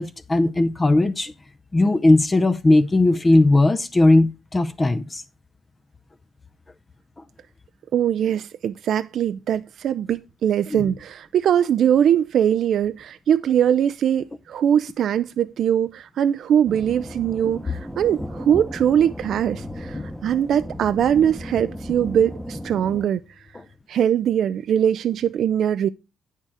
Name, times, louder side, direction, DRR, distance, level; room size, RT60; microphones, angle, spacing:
voice 1, 0.0-1.3 1.7-5.2 10.7-10.8 19.9-20.1, left 2 dB, 25° left, 0.6 m, -18 dB
voice 2, 7.9-23.2 23.9-25.9, right 9 dB, 70° right, 0.4 m, -21 dB
sound 1, 16.7-23.1, equal, ahead, 1.0 m, -35 dB
8.8 x 6.5 x 4.8 m
cardioid pair, 90°, 0 cm